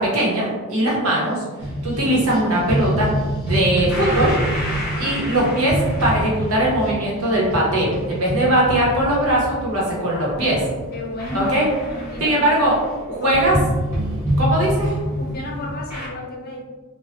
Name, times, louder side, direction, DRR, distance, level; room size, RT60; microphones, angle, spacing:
voice 1, 0.0-1.4 1.8-3.1 3.4-4.4 5.0-10.6 11.3-11.7 12.2-12.8 13.0-13.6 14.4-15.0, right 1 dB, 90° right, -4 dB, 1.0 m, -20 dB
sound 1, 1.6-13.0 13.3-16.1, equal, 10° right, 1.4 m, -26 dB
voice 2, 5.0-5.3 10.1-10.6 10.9-12.5 13.2-13.5 15.2-16.6, left 1 dB, 45° left, -1 dB, 0.6 m, -33 dB
3.1 x 2.3 x 2.8 m, 1.4 s
head